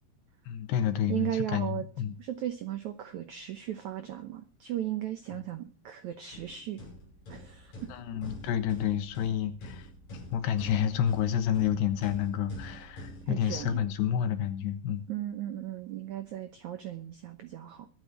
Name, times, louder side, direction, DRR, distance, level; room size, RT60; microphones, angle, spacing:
voice 1, 0.5-1.7 2.0-2.1 7.9-9.8 10.3-15.0, left 9 dB, 90° left, 9 dB, 3.4 m, -29 dB
voice 2, 1.1-1.9 2.2-6.8 7.3-7.9 13.3-13.9 15.1-17.9, right 12 dB, 85° right, 9 dB, 1.6 m, -36 dB
sound 1, 6.3-14.3, left 1 dB, 45° left, 7.2 m, -46 dB
22.5 x 8.4 x 4.6 m, 0.38 s
omnidirectional pair, 4.7 m